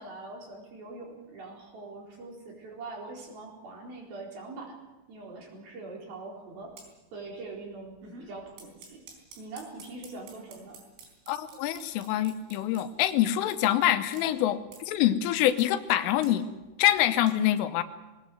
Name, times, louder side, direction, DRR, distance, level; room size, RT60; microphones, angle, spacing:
voice 1, 0.0-4.8 5.1-6.7 7.1-9.0 9.4-10.8, right 3 dB, 50° right, -1 dB, 5.8 m, -43 dB
sound 1, 6.6-6.9 7.3-7.5 7.8-13.6 14.1-14.2 14.6-14.8 15.3-15.6 15.9-17.3, right 4 dB, 80° right, 6.6 m, -50 dB
voice 2, 11.3-16.4 16.8-17.8, left 12 dB, 85° left, 10 dB, 3.5 m, -25 dB
21.0 x 19.0 x 7.9 m, 1.1 s
omnidirectional pair, 5.6 m